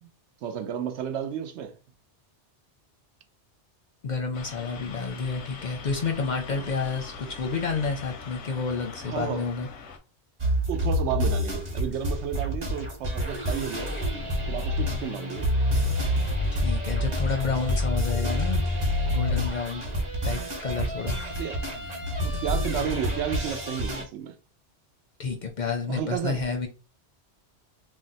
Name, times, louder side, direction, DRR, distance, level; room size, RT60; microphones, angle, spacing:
voice 1, 0.4-1.8 6.5-6.6 9.0-9.4 10.7-14.0 14.5-15.5 21.3-21.6 22.2-24.4 25.9-26.4, right 9 dB, 85° right, 0.9 m, -32 dB
voice 2, 4.0-9.7 16.5-18.6 19.1-19.9 20.2-21.2 25.2-26.7, left 4 dB, 55° left, 0.6 m, -30 dB
sound 1, 4.3-10.0, left 5 dB, 90° left, 0.9 m, -42 dB
sound 2, 10.4-24.0, left 1 dB, 40° right, 1.0 m, -27 dB
2.7 x 2.1 x 3.9 m
omnidirectional pair, 1.1 m